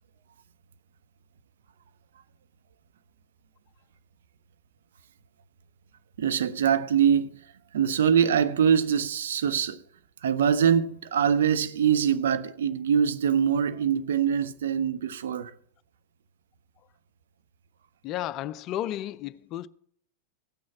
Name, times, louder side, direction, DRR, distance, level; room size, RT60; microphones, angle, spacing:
voice 1, 6.2-7.4 7.7-9.8 10.2-15.5, right 8 dB, 60° right, 0.6 m, -23 dB
voice 2, 18.0-19.7, left 13 dB, 35° left, 0.4 m, -33 dB
15.5 x 6.3 x 7.2 m
figure-of-eight pair, 90°, 0 cm